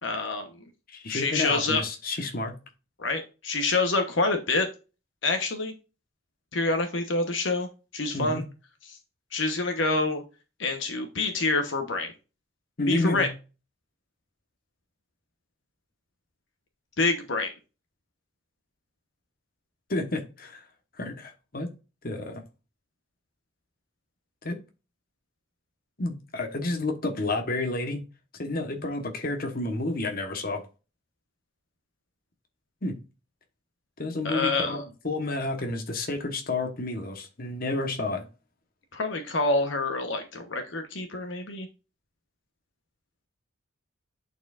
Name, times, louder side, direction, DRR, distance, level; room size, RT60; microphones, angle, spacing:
voice 1, 0.0-0.4 1.1-1.8 3.0-4.7 5.2-5.7 6.5-7.7 7.9-8.4 8.9-9.0 9.3-10.2 10.6-12.1 12.9-13.3 17.0-17.5 34.2-34.8 38.9-41.7, left 3 dB, 65° left, 1.1 m, -27 dB
voice 2, 0.9-2.6 8.1-8.4 12.8-13.3 19.9-20.6 21.0-21.7 22.0-22.4 24.4-24.6 26.0-28.0 28.4-30.6 32.8-33.0 34.0-38.3, left 2 dB, 45° left, 1.2 m, -30 dB
9.9 x 4.4 x 2.5 m
head